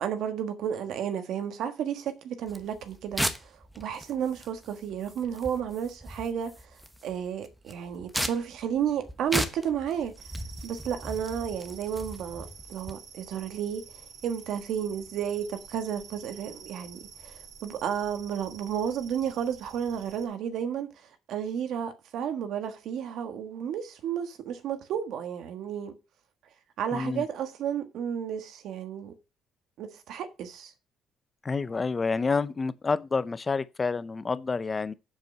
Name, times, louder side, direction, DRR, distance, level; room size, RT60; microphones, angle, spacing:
voice 1, 0.0-10.1 10.6-25.9 26.8-29.1 29.8-30.7, right 8 dB, 65° right, 1.4 m, -32 dB
sound 1, 2.5-12.9, equal, 5° right, 1.1 m, -37 dB
sound 2, 10.2-20.3, right 6 dB, 50° right, 2.1 m, -49 dB
voice 2, 26.9-27.2 31.4-34.9, left 4 dB, 20° left, 0.6 m, -28 dB
8.0 x 7.5 x 5.4 m
cardioid pair, 145°, 0 cm